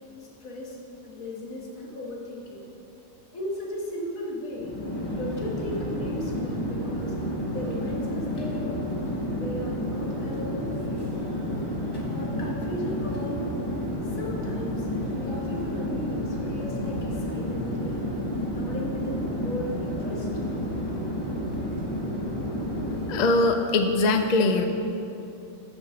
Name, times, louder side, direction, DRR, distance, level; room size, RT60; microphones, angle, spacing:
voice 1, 0.4-0.8 1.0-2.6 3.3-4.7 5.1-7.2 7.5-8.8 9.3-11.3 12.1-13.4 14.2-14.9 15.2-18.0 18.5-20.6, left 1 dB, 80° left, -2 dB, 1.8 m, -36 dB
Chatter / Fixed-wing aircraft airplane, 4.5-23.4, equal, 20° left, 1.2 m, -30 dB
voice 2, 23.1-24.6, left 2 dB, 55° left, 6 dB, 0.4 m, -22 dB
6.7 x 6.2 x 6.5 m, 2.7 s
omnidirectional pair, 1.4 m